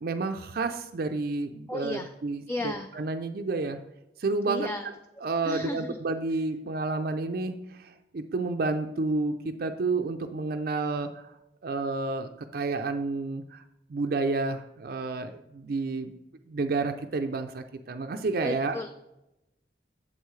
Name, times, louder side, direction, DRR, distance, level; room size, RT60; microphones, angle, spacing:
voice 1, 0.0-3.8 4.2-4.7 5.2-11.2 11.6-13.6 13.9-16.1 16.5-18.8, right 3 dB, 55° right, 7 dB, 0.4 m, -30 dB
voice 2, 1.7-2.1 2.5-2.9 4.5-4.9 5.4-6.0 18.4-18.9, left 1 dB, 15° left, 6 dB, 0.3 m, -34 dB
8.1 x 7.3 x 3.2 m, 0.91 s
head